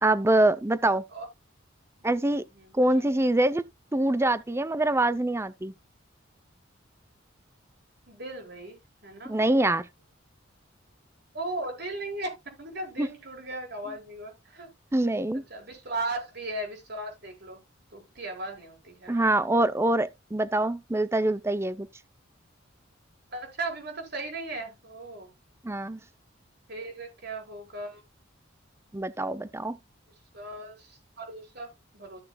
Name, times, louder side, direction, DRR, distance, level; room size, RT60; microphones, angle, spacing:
voice 1, 0.0-1.0 2.0-2.4 2.7-3.6 3.9-5.7 9.2-9.9 13.0-13.1 14.9-15.4 19.1-21.9 25.6-26.0 28.9-29.8, right 1 dB, 15° right, 0.5 m, -24 dB
voice 2, 2.6-3.0 8.1-8.8 9.0-9.3 11.3-14.7 15.5-17.6 17.9-19.2 23.3-25.3 26.7-28.0 30.3-32.2, right 2 dB, 55° right, 4.6 m, -37 dB
14.5 x 7.0 x 2.3 m
head